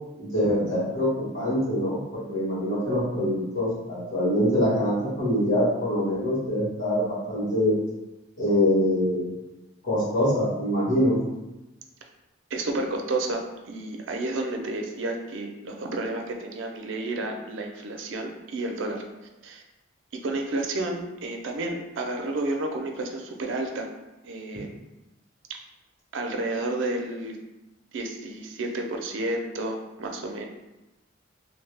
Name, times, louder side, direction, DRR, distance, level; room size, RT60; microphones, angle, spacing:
voice 1, 0.2-7.7 8.4-9.3 9.8-11.2, equal, 90° left, -8 dB, 1.5 m, -24 dB
voice 2, 12.5-19.0 19.4-19.6 20.2-23.9 24.2-24.7 26.1-27.4 27.9-30.4, right 2 dB, 75° right, 3 dB, 0.4 m, -31 dB
2.7 x 2.1 x 3.2 m, 1.0 s
head